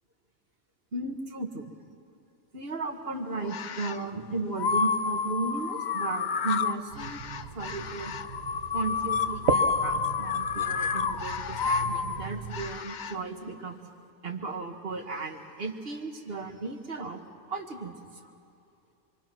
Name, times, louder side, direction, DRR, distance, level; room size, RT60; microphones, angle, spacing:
voice 1, 0.9-1.7 2.5-7.2 7.6-8.2 8.7-13.8 14.2-17.2 17.5-18.3, right 3 dB, 55° right, 4 dB, 1.9 m, -35 dB
sound 1, 3.4-4.0 4.6-13.2, left 5 dB, 50° left, 0.7 m, -30 dB
sound 2, 6.9-12.8, right 6 dB, 75° right, 1.3 m, -36 dB
27.5 x 23.5 x 6.2 m, 2.6 s
omnidirectional pair, 1.2 m